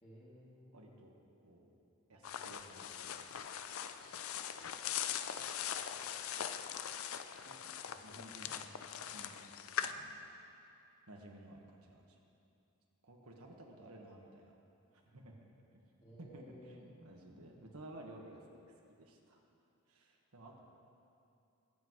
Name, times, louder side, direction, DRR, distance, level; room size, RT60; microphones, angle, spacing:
voice 1, 0.0-0.7 7.8-7.9 8.4-8.6 8.9-9.1 16.0-16.9, equal, 30° left, -7 dB, 2.7 m, -57 dB
voice 2, 0.7-1.1 1.4-1.7 2.1-3.3 4.0-4.2 4.5-5.0 7.4-8.7 9.1-9.4 9.8-10.2 10.5-10.6 11.1-12.2 13.0-14.5 14.9-15.3 15.7-15.8 16.2-18.6 19.0-19.4 19.9-20.6, right 1 dB, 80° right, 0 dB, 1.5 m, -55 dB
sound 1, 2.2-9.9, left 9 dB, 70° left, 0.4 m, -41 dB
22.5 x 7.9 x 3.1 m, 2.7 s
head